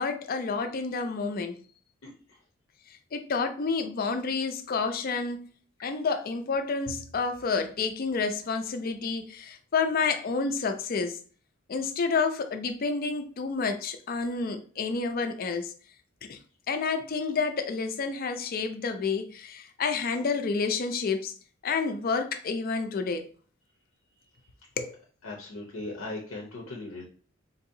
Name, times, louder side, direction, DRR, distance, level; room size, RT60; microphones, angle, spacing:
voice 1, 0.0-1.6 3.1-5.5 5.8-11.2 11.7-15.7 16.2-16.4 16.7-21.3 21.6-23.3 24.8-24.9, left 4 dB, 45° left, 0.4 m, -29 dB
voice 2, 2.0-2.4 25.2-27.0, left 2 dB, 85° left, 0.7 m, -39 dB
3.9 x 2.7 x 2.6 m
head